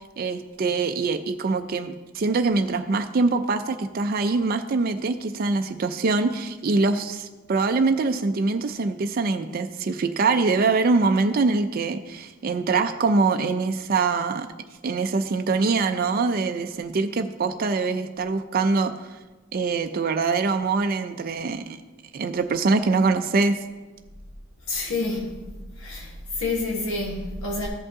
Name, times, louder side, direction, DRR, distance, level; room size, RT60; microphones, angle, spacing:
voice 1, 0.2-14.5 14.8-18.9 19.5-21.8 22.1-23.6, right 3 dB, 45° right, 7 dB, 0.4 m, -23 dB
voice 2, 24.7-25.3 25.8-27.7, left 2 dB, 70° left, -1 dB, 1.3 m, -28 dB
14.5 x 5.3 x 3.6 m, 1.2 s
head